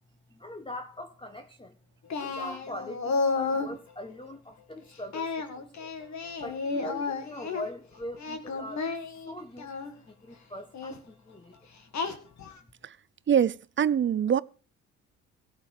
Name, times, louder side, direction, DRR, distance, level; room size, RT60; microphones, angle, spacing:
voice 1, 0.3-1.8 2.2-5.9 6.4-8.9 9.2-9.7 10.0-11.7 12.6-12.7, left 1 dB, 15° left, 1.3 m, -42 dB
Singing, 2.1-3.8 5.1-7.7 8.1-9.9 10.7-11.0 11.9-12.6, left 4 dB, 50° left, 2.1 m, -32 dB
voice 2, 13.3-14.4, right 8 dB, 30° right, 0.5 m, -24 dB
17.0 x 7.6 x 5.0 m
hypercardioid pair, 50°, 37 cm